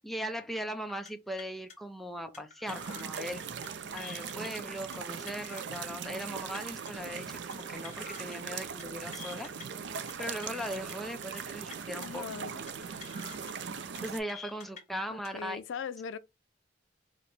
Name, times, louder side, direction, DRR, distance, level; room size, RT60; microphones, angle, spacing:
voice 1, 0.0-3.4 3.9-9.5 10.2-12.2 14.0-15.6, equal, ahead, 0.5 m, -39 dB
sound 1, 0.9-1.1 1.4-1.7 2.3-3.2 3.5-3.7 4.0-4.5 4.9-5.8 6.1-6.3 6.5-6.9 7.5-8.4 8.6-8.8 9.1-9.7 10.1-10.9 11.2-11.4 11.7-12.1 12.7-13.5 13.8-14.0 14.3-14.8 15.2-15.4, left 6 dB, 40° left, 1.0 m, -48 dB
sound 2, 2.7-14.2, right 6 dB, 65° right, 0.4 m, -40 dB
voice 2, 12.0-12.6 15.1-16.2, left 6 dB, 90° left, 0.4 m, -40 dB
4.8 x 2.1 x 3.1 m
head